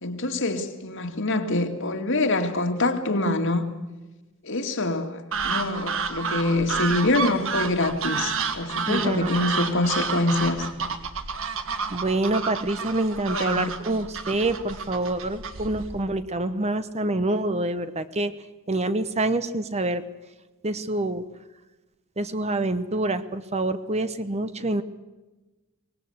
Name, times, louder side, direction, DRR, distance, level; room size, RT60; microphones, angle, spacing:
voice 1, 0.0-3.7 4.4-10.7 13.3-13.8, left 2 dB, 60° left, 2.3 m, -25 dB
sound 1, 5.3-16.0, right 5 dB, 65° right, 1.8 m, -30 dB
voice 2, 8.9-9.6 11.9-18.3 18.7-20.0 20.6-21.2 22.2-24.8, right 2 dB, 30° right, 1.0 m, -26 dB
24.0 x 19.5 x 8.0 m
head